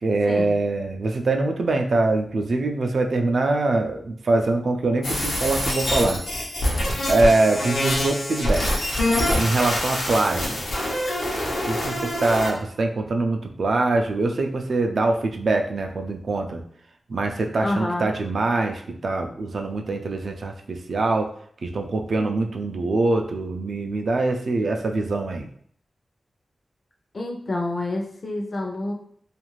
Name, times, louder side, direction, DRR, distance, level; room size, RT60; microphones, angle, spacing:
voice 1, 0.0-6.2 7.1-8.7 9.4-10.6 11.7-16.6 17.1-21.3 21.6-25.5, right 2 dB, 65° right, 3 dB, 0.3 m, -23 dB
sound 1, 5.0-12.5, left 1 dB, 90° left, 0.7 m, -25 dB
voice 2, 17.6-18.1 27.1-28.9, left 2 dB, 50° left, 1 dB, 0.5 m, -28 dB
2.4 x 2.4 x 3.1 m, 0.62 s
wide cardioid pair, 95°, 0 cm